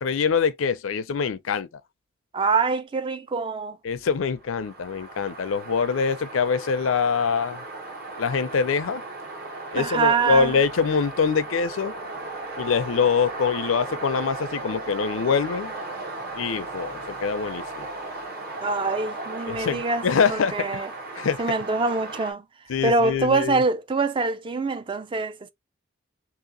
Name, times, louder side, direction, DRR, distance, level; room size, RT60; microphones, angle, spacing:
voice 1, 0.0-1.7 3.8-7.6 8.2-9.0 9.7-11.9 12.6-15.7 16.3-17.9 19.5-20.8 21.2-21.4 22.7-23.6, left 5 dB, 85° left, 0.5 m, -24 dB
voice 2, 2.3-3.8 9.7-10.6 18.6-20.0 20.3-20.9 21.4-22.4 22.8-25.5, right 4 dB, 25° right, 0.4 m, -24 dB
sound 1, 4.4-22.3, right 2 dB, 50° right, 1.2 m, -36 dB
2.9 x 2.8 x 3.8 m
head